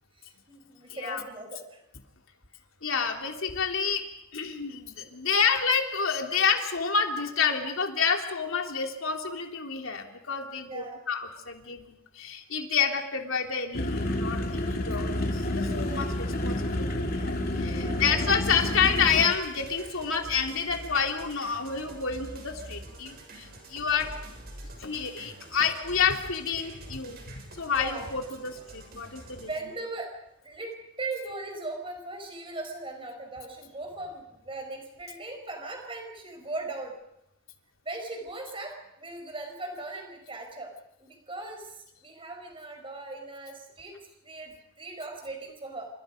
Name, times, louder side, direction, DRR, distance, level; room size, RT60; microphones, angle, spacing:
voice 1, 0.1-1.8 10.6-11.0 17.5-18.2 27.8-28.0 29.4-30.1 30.4-30.7 31.0-36.9 37.8-40.7 41.0-43.9 44.2-45.9, right 2 dB, 25° right, 4 dB, 5.3 m, -39 dB
voice 2, 0.9-1.2 2.8-4.0 4.3-11.9 12.1-24.1 24.8-27.2 27.6-29.5, left 6 dB, 65° left, 3 dB, 3.3 m, -29 dB
sound 1, 13.7-19.3, left 1 dB, 45° left, 3.3 m, -29 dB
sound 2, 18.4-29.5, right 1 dB, 45° right, 6.1 m, -46 dB
29.0 x 27.0 x 5.3 m, 0.82 s
head